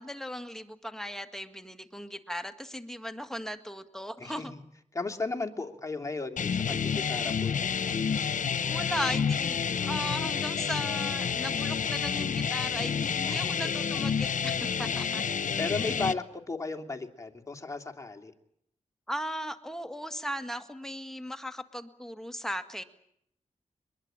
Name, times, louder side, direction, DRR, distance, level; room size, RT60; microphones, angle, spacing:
voice 1, 0.0-4.5 8.7-15.5 19.1-22.8, equal, 5° left, 8 dB, 2.0 m, -37 dB
voice 2, 4.2-4.6 4.9-7.9 13.2-13.7 15.6-18.3, left 3 dB, 25° left, 3 dB, 2.9 m, -35 dB
sound 1, 6.4-16.1, left 7 dB, 80° left, 1.0 m, -29 dB
23.0 x 22.0 x 9.0 m, 0.73 s
cardioid pair, 65°, 13 cm